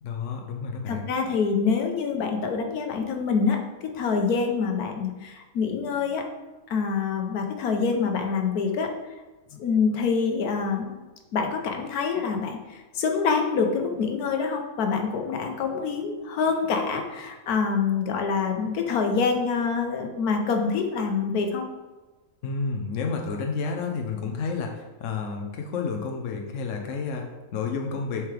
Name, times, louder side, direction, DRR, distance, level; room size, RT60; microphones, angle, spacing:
voice 1, 0.0-1.1 22.4-28.2, left 5 dB, 65° left, 2 dB, 1.0 m, -30 dB
voice 2, 0.9-6.2 6.7-8.9 9.5-10.9 11.3-21.6, left 5 dB, 85° left, 4 dB, 1.3 m, -26 dB
6.9 x 4.5 x 3.3 m, 1.2 s
omnidirectional pair, 1.5 m